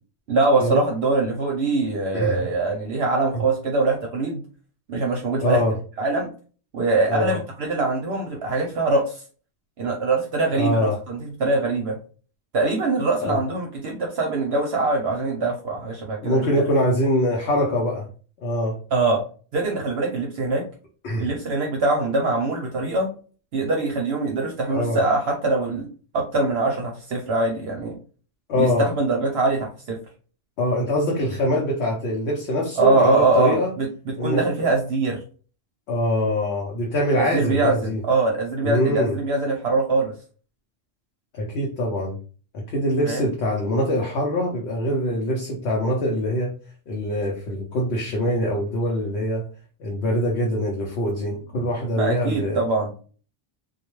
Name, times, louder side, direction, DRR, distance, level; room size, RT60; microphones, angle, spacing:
voice 1, 0.3-4.4 4.9-5.6 6.0-6.3 6.7-9.1 9.8-12.0 12.5-16.6 18.9-19.2 19.5-20.6 21.2-23.1 23.5-25.9 26.1-27.9 28.6-30.0 32.8-35.2 37.2-40.1 43.0-43.2 52.0-52.9, right 3 dB, 65° right, 1 dB, 0.8 m, -23 dB
voice 2, 5.4-5.8 7.1-7.4 10.6-11.0 13.2-13.4 16.2-18.1 18.4-18.8 21.0-21.3 24.7-25.0 28.5-28.9 30.6-33.7 34.2-34.5 35.9-38.0 38.6-39.2 41.3-42.2 42.5-46.6 46.9-49.5 49.8-52.6, left 1 dB, 65° left, -1 dB, 0.8 m, -23 dB
2.3 x 2.1 x 2.9 m, 0.39 s
omnidirectional pair, 1.3 m